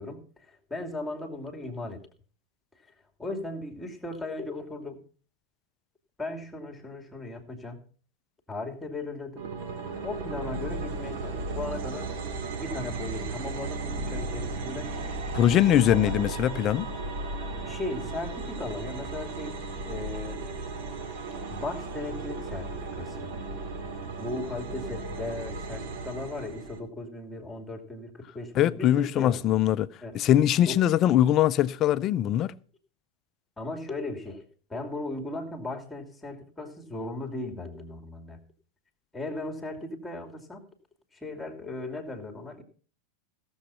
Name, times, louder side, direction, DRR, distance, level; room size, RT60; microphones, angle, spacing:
voice 1, 0.0-2.0 3.2-5.0 6.2-7.8 8.5-9.5 10.0-12.1 12.6-14.9 15.6-16.1 17.5-19.6 19.8-20.4 21.5-23.3 24.2-29.4 30.0-30.2 30.7-30.9 33.6-34.4 34.7-38.4 39.1-40.6 41.1-42.6, left 2 dB, 5° left, 2.7 m, -37 dB
sound 1, 9.4-26.8, right 3 dB, 50° right, 2.3 m, -35 dB
voice 2, 15.3-16.9 28.6-29.9 30.1-32.5, left 11 dB, 35° left, 0.5 m, -22 dB
16.0 x 7.3 x 5.7 m
figure-of-eight pair, 90°, 0 cm